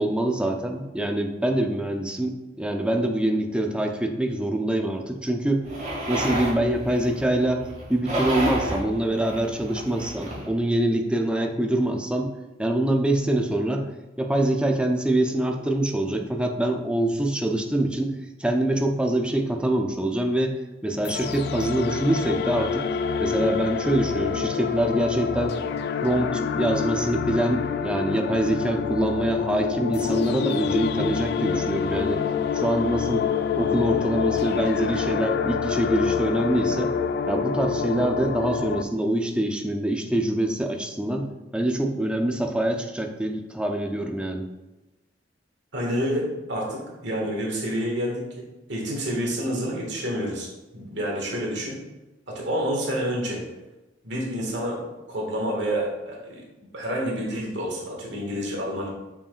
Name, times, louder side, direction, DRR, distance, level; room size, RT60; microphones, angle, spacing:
voice 1, 0.0-5.6 6.1-7.6 7.9-12.3 12.6-13.9 14.2-18.1 18.4-20.6 20.8-22.8 23.2-25.6 26.0-32.2 32.5-33.3 33.5-36.9 37.3-44.5, right 1 dB, 5° right, 3 dB, 0.5 m, -25 dB
sound 1, 5.6-10.5, right 1 dB, 40° right, 2.1 m, -31 dB
sound 2, 21.0-38.8, left 6 dB, 60° left, 0.3 m, -27 dB
voice 2, 45.7-51.8 52.3-53.4 54.0-56.4 56.7-58.9, equal, 70° right, -2 dB, 1.8 m, -29 dB
7.1 x 5.7 x 2.4 m, 1.1 s
head